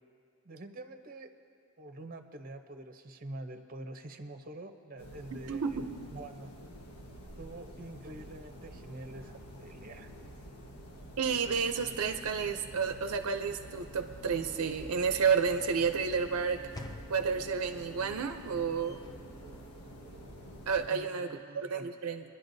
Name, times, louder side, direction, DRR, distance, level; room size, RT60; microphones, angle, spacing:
voice 1, 0.4-1.3 1.8-5.8 6.1-6.5 7.4-10.1 20.9-21.9, right 1 dB, 40° right, 6 dB, 0.7 m, -46 dB
sound 1, 5.0-20.9, equal, 90° left, 1.3 m, -49 dB
voice 2, 5.3-5.9 11.2-16.6 17.1-19.0 20.7-22.2, right 6 dB, 80° right, 7 dB, 0.5 m, -31 dB
Sliding door / Slam, 13.3-20.3, left 1 dB, 15° left, 0.5 m, -52 dB
26.0 x 11.0 x 2.7 m, 2.2 s
head